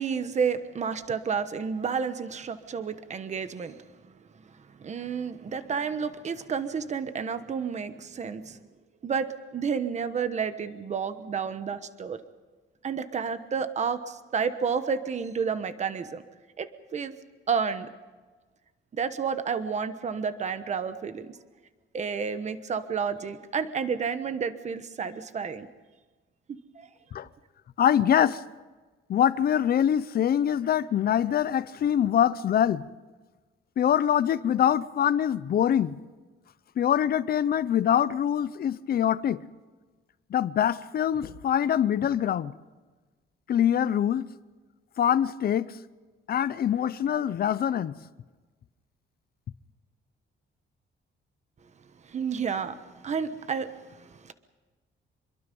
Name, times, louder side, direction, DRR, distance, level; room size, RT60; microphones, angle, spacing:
voice 1, 0.0-3.8 4.8-8.6 9.0-12.2 12.8-16.2 16.6-17.1 17.5-17.9 18.9-21.4 21.9-25.7 26.5-26.9 52.0-54.3, right 6 dB, 35° right, 1.1 m, -31 dB
voice 2, 27.8-28.4 29.1-32.8 33.8-36.0 36.8-39.4 40.3-42.6 43.5-44.3 45.0-45.8 46.3-48.0, left 9 dB, 45° left, 0.7 m, -24 dB
26.5 x 23.0 x 5.4 m
wide cardioid pair, 180°, 21 cm